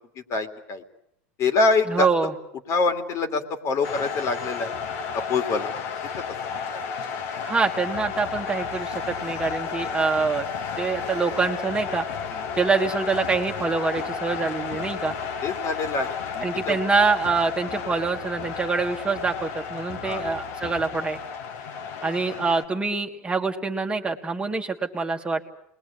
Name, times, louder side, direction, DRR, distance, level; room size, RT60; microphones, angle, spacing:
voice 1, 0.2-0.8 1.4-2.1 2.7-4.7 5.1-5.7 6.8-6.9 12.3-12.5 15.4-16.8 20.0-20.2 21.9-22.1, left 3 dB, 45° left, 7 dB, 2.9 m, -25 dB
voice 2, 1.9-2.3 7.4-10.5 10.8-12.0 12.6-15.1 16.4-21.2 22.0-25.4, right 4 dB, 15° right, 3 dB, 1.8 m, -25 dB
sound 1, 3.8-22.6, left 6 dB, 70° left, 2.4 m, -32 dB
28.0 x 21.0 x 8.6 m, 0.75 s
supercardioid pair, 115°, 8 cm